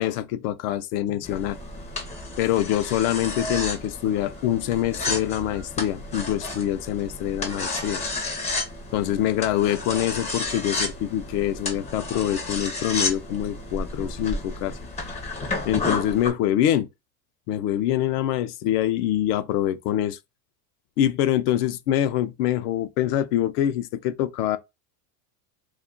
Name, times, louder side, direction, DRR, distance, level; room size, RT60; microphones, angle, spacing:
voice 1, 0.0-1.6 2.4-8.0 8.9-14.8 15.6-16.9 17.5-20.2 21.0-24.6, left 11 dB, 65° left, 0.6 m, -25 dB
sound 1, 1.2-16.3, left 2 dB, 15° left, 0.5 m, -32 dB
2.4 x 2.2 x 3.6 m
supercardioid pair, 125°, 50 cm